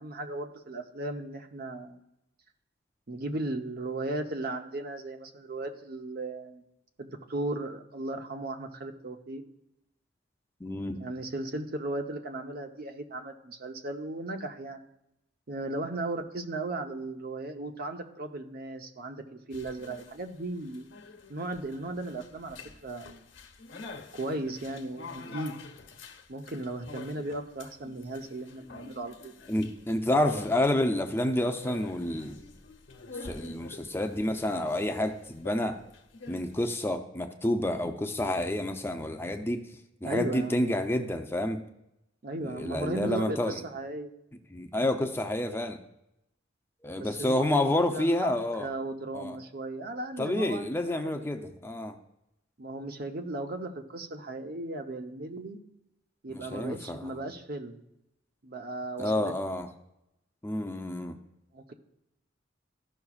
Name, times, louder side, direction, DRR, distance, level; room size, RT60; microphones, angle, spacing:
voice 1, 0.0-2.0 3.1-6.6 7.0-9.4 10.9-14.8 15.5-20.9 21.3-23.2 24.1-25.5 26.3-29.3 40.0-40.7 42.2-44.1 46.9-47.6 47.9-48.3 48.6-50.7 50.9-51.1 51.4-51.5 52.6-55.6 56.2-57.8 58.4-59.3 61.5-61.7, right 2 dB, 55° right, 5 dB, 0.8 m, -36 dB
voice 2, 10.6-11.0 29.5-32.4 33.2-35.8 36.3-39.6 40.0-41.6 42.4-43.6 44.5-45.8 46.8-48.7 49.1-49.4 50.2-52.0 56.3-57.1 59.0-59.7 60.4-61.2, left 1 dB, 15° left, 5 dB, 0.6 m, -29 dB
sound 1, 19.5-36.7, left 3 dB, 75° left, 1.0 m, -48 dB
14.0 x 5.9 x 2.4 m, 0.85 s
head